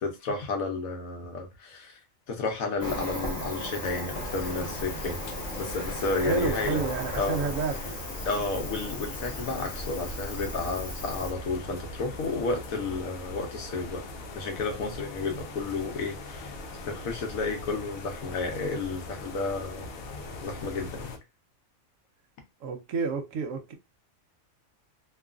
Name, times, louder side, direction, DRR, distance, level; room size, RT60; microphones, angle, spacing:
voice 1, 0.0-2.0 2.3-5.2 5.6-6.8 7.1-7.4 8.2-14.0 14.4-16.6 16.8-19.9 20.4-21.1, left 3 dB, 85° left, 1.2 m, -32 dB
Cricket, 2.8-11.3, equal, 30° left, 0.9 m, -36 dB
sound 1, 4.1-21.2, left 2 dB, 60° left, 0.6 m, -41 dB
voice 2, 6.2-8.0 22.6-23.7, right 4 dB, 75° right, 0.9 m, -30 dB
3.0 x 2.3 x 2.4 m
omnidirectional pair, 1.4 m